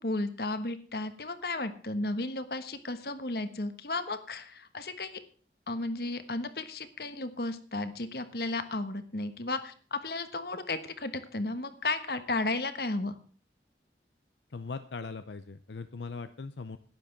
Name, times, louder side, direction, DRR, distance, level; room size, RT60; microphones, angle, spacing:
voice 1, 0.0-5.2 5.7-13.2, left 2 dB, 60° left, 10 dB, 1.3 m, -34 dB
voice 2, 14.5-16.8, left 4 dB, 85° left, 10 dB, 0.7 m, -40 dB
12.0 x 10.0 x 5.9 m, 0.42 s
head